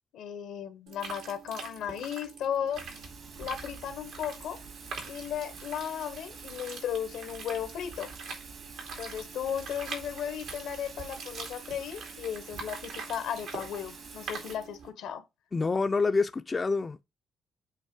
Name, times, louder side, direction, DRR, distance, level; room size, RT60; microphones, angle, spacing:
voice 1, 0.1-3.0 3.4-4.6 5.1-8.1 9.0-15.2, left 9 dB, 85° left, 1.2 m, -35 dB
sound 1, 0.9-14.9, right 4 dB, 85° right, 2.8 m, -44 dB
Thunder / Rain, 2.7-14.6, right 5 dB, 65° right, 2.4 m, -48 dB
voice 2, 15.5-17.0, left 4 dB, 30° left, 0.5 m, -27 dB
8.2 x 3.1 x 4.9 m
cardioid pair, 90°, 0 cm